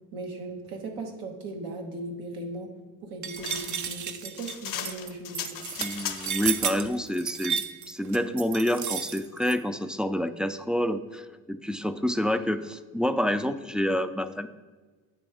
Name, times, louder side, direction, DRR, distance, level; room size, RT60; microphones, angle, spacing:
voice 1, 0.1-2.7 3.0-5.6, right 2 dB, 80° right, 2 dB, 1.2 m, -38 dB
sound 1, 3.2-9.6, right 7 dB, 50° right, 0.6 m, -32 dB
sound 2, 3.4-6.5, left 9 dB, 60° left, 0.7 m, -37 dB
voice 2, 5.8-7.6 7.9-14.5, left 1 dB, ahead, 9 dB, 0.3 m, -28 dB
8.8 x 3.4 x 4.8 m, 1.4 s
supercardioid pair, 55°, 38 cm